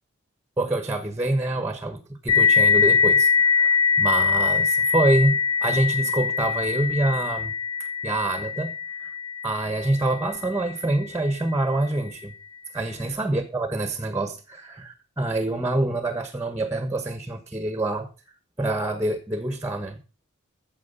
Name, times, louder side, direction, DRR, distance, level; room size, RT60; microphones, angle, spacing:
voice 1, 0.6-7.5 7.8-8.7 9.0-9.1 9.4-12.3 12.7-18.1 18.6-20.0, right 2 dB, 10° right, 1.2 m, -26 dB
sound 1, 2.3-11.5, left 6 dB, 25° left, 2.6 m, -23 dB
14.5 x 7.4 x 5.6 m
head